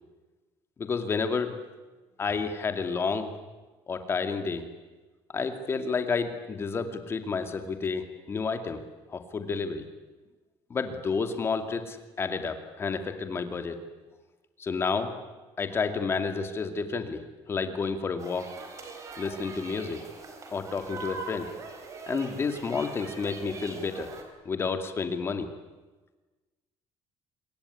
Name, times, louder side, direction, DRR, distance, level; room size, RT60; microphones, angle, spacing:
voice 1, 0.8-1.6 2.2-3.3 3.9-4.7 5.3-8.8 9.1-9.9 10.7-13.8 14.6-15.1 15.6-18.5 19.2-20.0 20.5-21.5 22.1-24.1 24.4-25.5, left 5 dB, 25° left, 8 dB, 2.4 m, -30 dB
sound 1, 18.2-24.2, right 3 dB, 30° right, 4.6 m, -42 dB
26.0 x 22.0 x 9.9 m, 1.2 s
cardioid pair, 175°, 10 cm